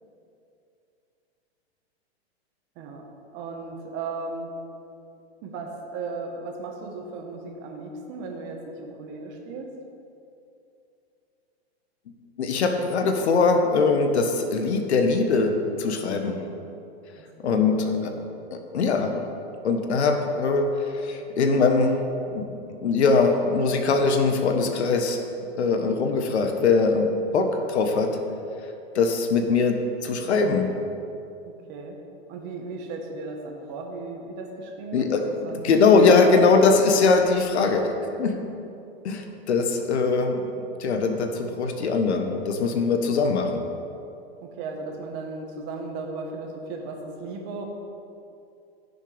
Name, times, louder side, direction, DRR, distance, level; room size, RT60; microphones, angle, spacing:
voice 1, 2.7-3.1 3.3-4.5 5.4-9.7 17.2-18.1 31.5-32.0 32.3-36.5 44.4-47.6, right 3 dB, 35° right, 2 dB, 1.4 m, -36 dB
voice 2, 12.4-15.5 15.8-16.4 17.4-18.1 18.5-19.1 19.6-20.7 20.9-22.0 22.3-22.5 22.7-25.2 25.6-27.1 27.3-28.1 28.9-30.7 34.9-35.2 35.5-37.9 38.2-38.4 39.0-43.6, left 4 dB, 90° left, 5 dB, 1.3 m, -21 dB
15.5 x 6.5 x 3.5 m, 2.7 s
supercardioid pair, 155°, 32 cm